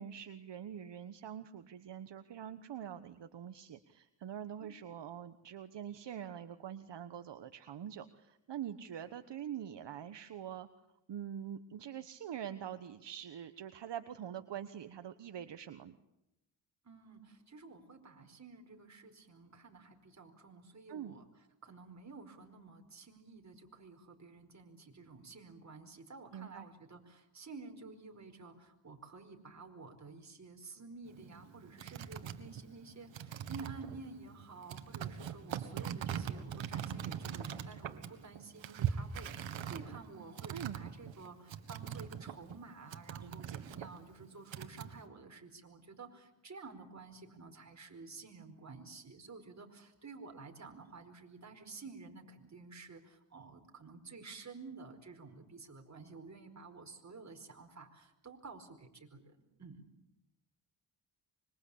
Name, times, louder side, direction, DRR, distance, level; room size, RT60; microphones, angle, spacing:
voice 1, 0.0-10.7 11.1-16.0 20.9-21.2 26.3-26.7 40.5-40.8 43.2-43.6, right 9 dB, 65° right, 10 dB, 1.3 m, -45 dB
voice 2, 16.8-21.2 21.6-59.8, right 4 dB, 35° right, 5 dB, 4.8 m, -52 dB
sound 1, 31.1-42.6 42.9-45.0, right 8 dB, 85° right, 1.9 m, -41 dB
25.5 x 23.5 x 8.6 m, 0.88 s
cardioid pair, 85°, 45 cm